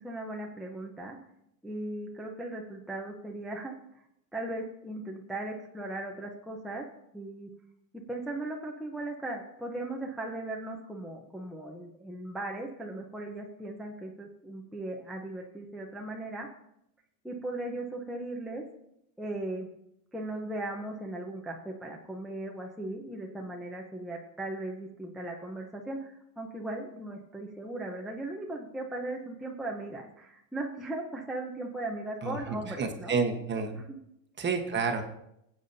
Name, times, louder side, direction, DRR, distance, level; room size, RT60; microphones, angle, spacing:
voice 1, 0.0-1.2 1.6-3.7 4.3-6.8 7.1-7.5 7.9-16.5 17.2-18.7 19.2-19.7 20.1-33.2 33.7-34.0, right 2 dB, ahead, -1 dB, 0.8 m, -38 dB
voice 2, 32.2-33.8 34.4-35.0, right 5 dB, 20° right, 4 dB, 1.2 m, -30 dB
17.5 x 8.5 x 2.7 m, 0.80 s
supercardioid pair, 125°, 48 cm